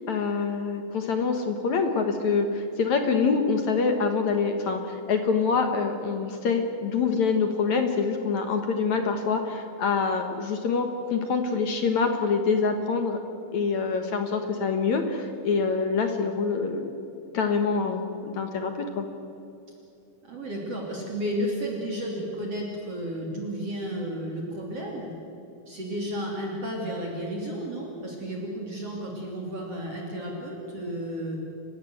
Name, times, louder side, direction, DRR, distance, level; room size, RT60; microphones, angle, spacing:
voice 1, 0.1-13.2 13.5-16.9 17.3-19.1, left 5 dB, 60° left, 5 dB, 2.4 m, -25 dB
voice 2, 20.2-25.1 25.7-31.4, equal, 40° right, -1 dB, 3.7 m, -32 dB
29.5 x 16.0 x 8.1 m, 2.8 s
omnidirectional pair, 4.3 m